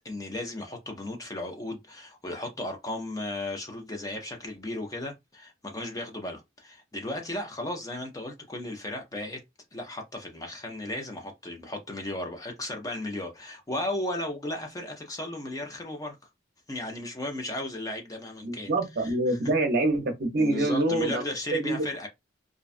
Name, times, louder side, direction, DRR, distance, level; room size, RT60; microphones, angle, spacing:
voice 1, 0.0-9.4 9.7-16.2 16.7-18.7 19.0-19.4 20.4-22.1, left 1 dB, 20° left, 0.4 m, -35 dB
voice 2, 18.4-21.2 21.5-21.8, right 2 dB, 50° right, 0.6 m, -26 dB
2.5 x 2.2 x 2.4 m
head